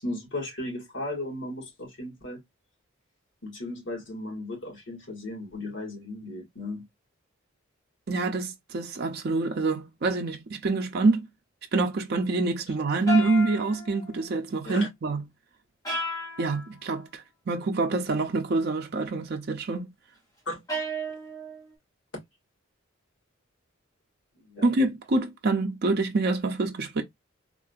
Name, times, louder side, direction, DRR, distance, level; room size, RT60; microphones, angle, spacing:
voice 1, 0.0-2.4 3.4-6.9 14.6-14.9 20.5-20.6 24.4-24.6, left 1 dB, 65° left, 1.9 m, -35 dB
voice 2, 8.1-11.3 11.7-15.2 16.4-19.9 24.6-27.0, right 3 dB, 50° right, 0.5 m, -26 dB
sound 1, 13.1-14.2 15.8-16.7 20.7-21.7, equal, 15° left, 1.3 m, -33 dB
3.7 x 2.5 x 2.3 m
head